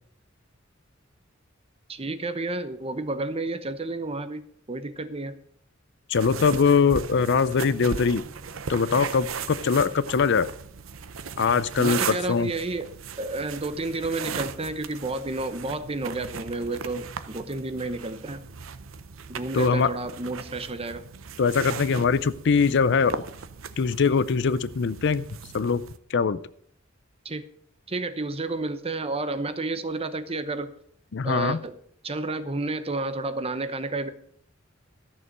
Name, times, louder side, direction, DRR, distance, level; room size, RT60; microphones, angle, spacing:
voice 1, 1.9-4.4 4.7-5.4 11.8-18.4 19.3-21.0 27.2-27.4 27.9-30.7 31.2-31.7 32.0-34.1, right 2 dB, 30° right, 10 dB, 0.9 m, -31 dB
voice 2, 6.1-8.2 8.7-10.5 11.4-12.5 19.5-19.9 21.4-23.2 23.8-25.3 25.5-25.8 26.1-26.4 31.1-31.6, left 5 dB, 60° left, 17 dB, 0.5 m, -22 dB
sound 1, 6.1-26.0, right 6 dB, 85° right, 0.7 m, -37 dB
14.0 x 6.7 x 6.6 m, 0.66 s
head